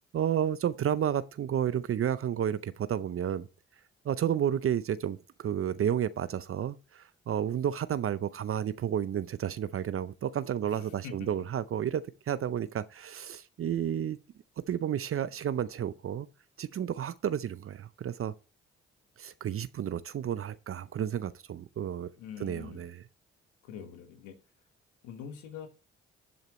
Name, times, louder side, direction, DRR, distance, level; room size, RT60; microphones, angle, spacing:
voice 1, 0.1-3.5 4.0-14.2 14.7-16.3 16.6-18.3 19.2-22.1 22.4-23.0, right 9 dB, 50° right, 0.6 m, -31 dB
voice 2, 10.6-11.3 22.2-22.8 23.6-24.3 25.0-25.7, left 7 dB, 85° left, 1.3 m, -44 dB
11.0 x 7.9 x 3.0 m
hypercardioid pair, 45°, 29 cm